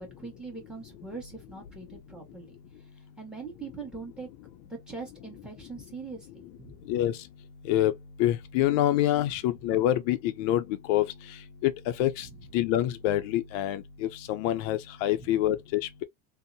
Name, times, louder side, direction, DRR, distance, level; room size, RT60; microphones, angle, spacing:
voice 1, 0.0-2.6 3.2-4.3 4.6-6.9 12.3-12.5 15.2-15.6, right 4 dB, ahead, 1.2 m, -42 dB
voice 2, 8.2-11.0 11.6-11.7 12.0-12.3 12.5-16.0, left 13 dB, 70° left, 0.5 m, -26 dB
2.7 x 2.1 x 2.6 m
cardioid pair, 145°, 39 cm